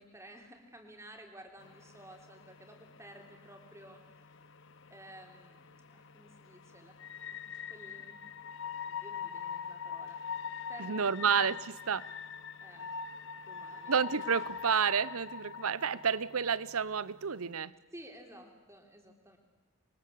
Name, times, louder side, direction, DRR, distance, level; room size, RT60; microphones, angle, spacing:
voice 1, 0.0-4.4 4.9-7.0 7.3-7.4 7.7-8.2 8.8-10.2 10.4-11.5 12.6-12.9 13.4-14.0 17.9-19.4, right 1 dB, 15° right, 3 dB, 3.4 m, -53 dB
sound 1, 1.6-17.5, left 7 dB, 55° left, 0.8 m, -44 dB
voice 2, 10.8-12.1 13.9-17.7, right 6 dB, 75° right, 19 dB, 0.8 m, -30 dB
26.5 x 23.5 x 8.4 m, 1.1 s
head